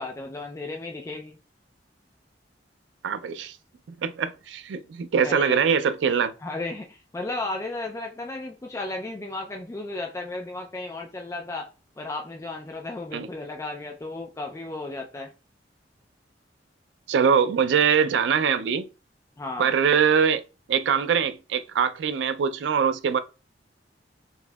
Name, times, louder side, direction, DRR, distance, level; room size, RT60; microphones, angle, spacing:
voice 1, 0.0-1.4 5.2-5.6 6.4-11.7 12.0-15.3 19.4-19.7, left 2 dB, 15° left, 0.3 m, -34 dB
voice 2, 3.0-3.6 4.0-6.3 13.1-13.3 17.1-18.9 19.6-20.4 20.7-23.2, right 7 dB, 80° right, 0.3 m, -23 dB
4.0 x 2.6 x 2.2 m
head